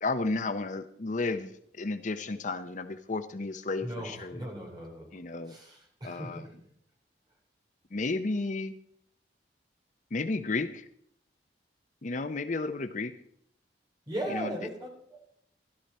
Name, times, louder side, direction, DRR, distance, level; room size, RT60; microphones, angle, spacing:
voice 1, 0.0-4.4 5.1-5.6 6.0-6.4 7.9-8.8 10.1-10.9 12.0-13.1 14.3-14.5, left 3 dB, 45° left, 10 dB, 0.7 m, -32 dB
voice 2, 3.8-6.6 14.1-15.2, right 1 dB, 25° right, -1 dB, 4.1 m, -38 dB
15.0 x 12.0 x 4.3 m, 0.69 s
head